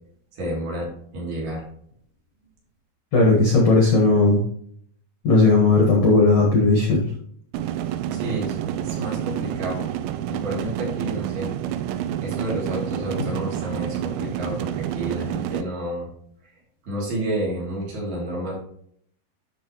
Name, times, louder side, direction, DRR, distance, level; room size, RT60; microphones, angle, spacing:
voice 1, 0.3-1.6 8.1-9.9 10.3-11.5 12.2-16.1 16.9-18.5, right 1 dB, 60° right, -4 dB, 4.8 m, -30 dB
voice 2, 3.1-4.4 5.2-7.1, left 3 dB, 55° left, -1 dB, 1.8 m, -16 dB
sound 1, 7.5-15.6, right 11 dB, 90° right, 3.0 m, -29 dB
12.0 x 5.5 x 3.0 m, 0.64 s
omnidirectional pair, 5.1 m